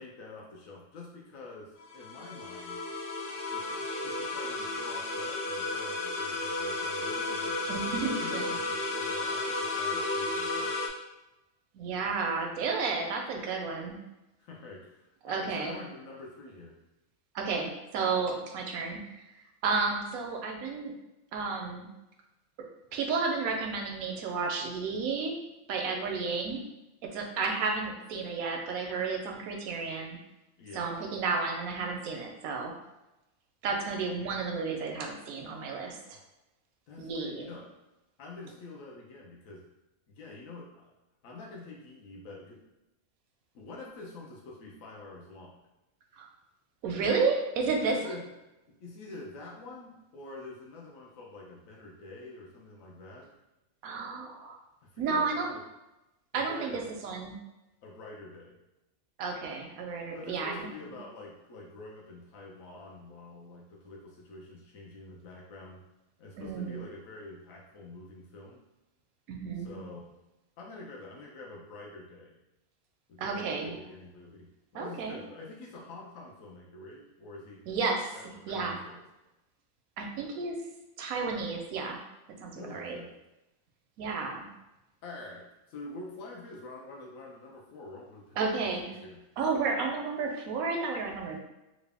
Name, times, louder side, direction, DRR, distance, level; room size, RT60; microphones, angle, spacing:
voice 1, 0.0-2.8 3.5-10.8 14.4-16.8 30.6-30.9 36.0-36.2 36.9-37.7 38.2-39.6 40.1-40.9 41.2-42.6 43.5-45.6 47.9-48.3 48.7-53.3 54.8-55.6 56.3-56.9 57.8-58.6 60.1-65.8 66.2-68.6 69.6-70.2 70.6-72.4 73.1-77.8 78.1-79.1 82.5-83.1 85.0-89.2, left 2 dB, 75° left, -3 dB, 1.1 m, -46 dB
sound 1, 1.8-10.9, left 2 dB, 60° left, 0.7 m, -33 dB
voice 2, 7.7-8.6 11.7-14.0 15.2-15.7 17.3-19.1 19.6-20.9 21.3-21.9 22.9-25.4 25.7-26.6 27.0-30.2 30.7-32.7 33.6-36.0 37.0-37.5 46.2-46.3 46.8-48.1 53.8-54.6 55.0-55.5 56.3-57.4 59.2-60.7 66.4-66.9 69.3-69.7 73.2-73.7 74.7-75.2 77.7-78.1 78.5-78.8 80.0-80.6 81.0-82.0 82.4-83.0 84.0-84.4 88.4-88.9 89.4-91.4, right 4 dB, 85° right, 2 dB, 1.1 m, -32 dB
3.2 x 2.5 x 3.3 m, 0.97 s
omnidirectional pair, 1.4 m